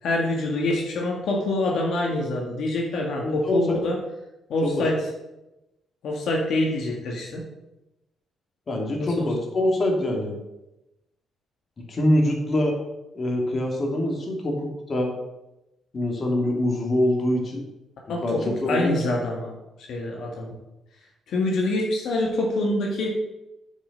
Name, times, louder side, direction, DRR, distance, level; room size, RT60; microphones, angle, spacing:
voice 1, 0.0-4.0 4.5-5.1 6.0-7.5 9.0-9.3 18.1-19.5 19.8-20.6 21.3-23.1, left 2 dB, 70° left, -1 dB, 1.8 m, -26 dB
voice 2, 3.2-3.8 4.6-4.8 8.7-10.3 11.9-12.8 13.1-15.2 15.9-17.6 18.2-19.1, left 1 dB, 40° left, 1 dB, 2.5 m, -24 dB
8.6 x 5.7 x 6.5 m, 0.96 s
cardioid pair, 90°, 0 cm